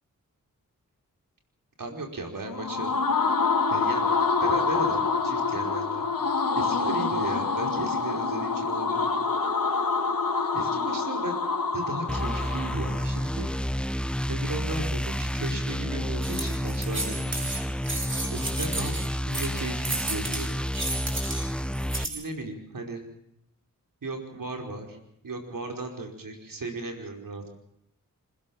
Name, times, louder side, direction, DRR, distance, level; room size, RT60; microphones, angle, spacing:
voice 1, 1.8-2.9 3.7-4.1 4.4-6.1 6.5-9.2 10.5-11.4 11.7-13.5 14.3-17.5 18.3-20.6 21.9-23.0 24.0-25.0 25.2-27.5, right 2 dB, 80° right, 3 dB, 5.1 m, -35 dB
sound 1, 2.4-13.3, left 4 dB, 80° left, 3.2 m, -26 dB
sound 2, 12.1-22.0, equal, 5° left, 0.8 m, -30 dB
sound 3, 16.2-22.2, right 2 dB, 35° right, 5.3 m, -34 dB
26.5 x 16.5 x 7.3 m, 0.76 s
cardioid pair, 50°, 33 cm